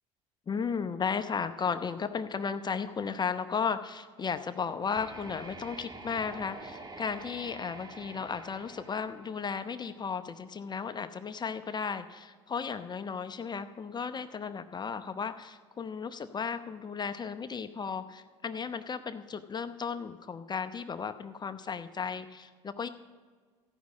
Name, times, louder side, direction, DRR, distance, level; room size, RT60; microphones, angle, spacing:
voice 1, 0.5-22.9, left 6 dB, 30° left, 10 dB, 0.8 m, -35 dB
sound 1, 4.9-9.9, right 3 dB, 30° right, 1.6 m, -47 dB
14.5 x 6.2 x 8.4 m, 1.5 s
hypercardioid pair, 65°, 14 cm